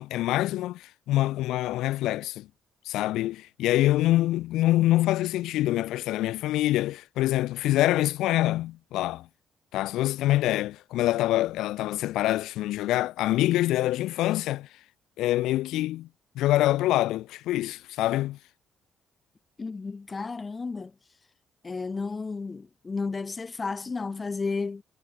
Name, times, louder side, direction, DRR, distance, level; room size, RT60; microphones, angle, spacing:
voice 1, 0.0-2.5 2.8-9.3 9.7-14.7 15.2-16.1 16.4-18.4, left 15 dB, 90° left, 0.7 m, -25 dB
voice 2, 19.6-20.9 21.6-24.8, left 4 dB, 30° left, 0.8 m, -32 dB
cardioid pair, 90°, 0 cm